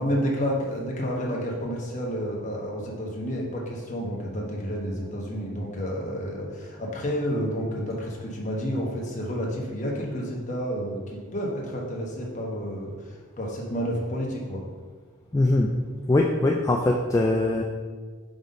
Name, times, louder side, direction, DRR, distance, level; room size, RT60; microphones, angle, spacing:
voice 1, 0.0-14.6, equal, 35° left, -2 dB, 1.1 m, -30 dB
voice 2, 15.3-15.7 16.1-17.6, left 2 dB, 15° left, 0 dB, 0.3 m, -22 dB
5.1 x 3.9 x 5.2 m, 1.5 s
head